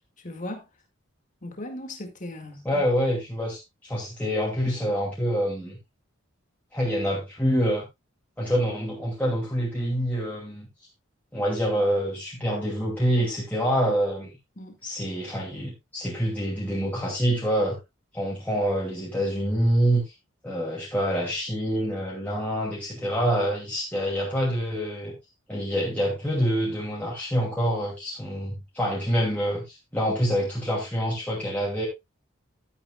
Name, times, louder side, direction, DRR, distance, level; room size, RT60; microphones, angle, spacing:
voice 1, 0.2-0.6 1.4-2.8 14.6-14.8, left 1 dB, 40° left, 2.2 m, -37 dB
voice 2, 2.6-5.8 6.7-7.8 8.4-10.7 11.3-14.3 14.8-17.8 18.1-20.1 20.4-25.1 25.5-31.9, equal, 10° left, 2.6 m, -26 dB
12.5 x 9.6 x 2.4 m
head